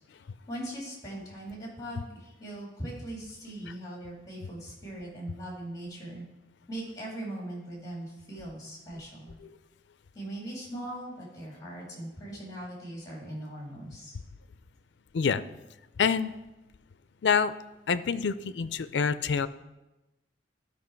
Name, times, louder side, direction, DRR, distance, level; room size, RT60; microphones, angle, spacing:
voice 1, 0.5-6.2 6.7-9.3 10.1-14.1, right 1 dB, 20° left, -3 dB, 2.5 m, -40 dB
voice 2, 16.0-16.4 17.2-17.5 17.9-19.5, left 6 dB, 75° left, 15 dB, 0.4 m, -27 dB
12.0 x 5.5 x 4.5 m, 1.0 s
head